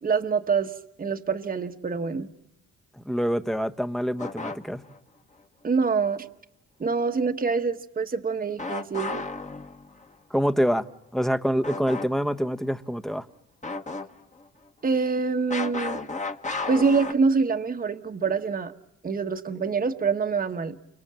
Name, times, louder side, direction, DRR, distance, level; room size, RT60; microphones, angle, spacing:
voice 1, 0.0-2.3 5.6-6.3 6.8-9.2 14.8-16.0 16.7-18.7 19.0-20.8, right 5 dB, 30° right, 5 dB, 1.3 m, -25 dB
voice 2, 3.0-4.8 10.3-10.9 11.1-13.3, equal, ahead, 10 dB, 1.1 m, -26 dB
sound 1, 4.2-5.0 8.6-10.1 11.6-12.1 12.4-12.5 13.6-14.4 15.5-17.1, left 3 dB, 25° left, 1.6 m, -33 dB
29.5 x 25.5 x 7.5 m, 0.82 s
cardioid pair, 90°, 30 cm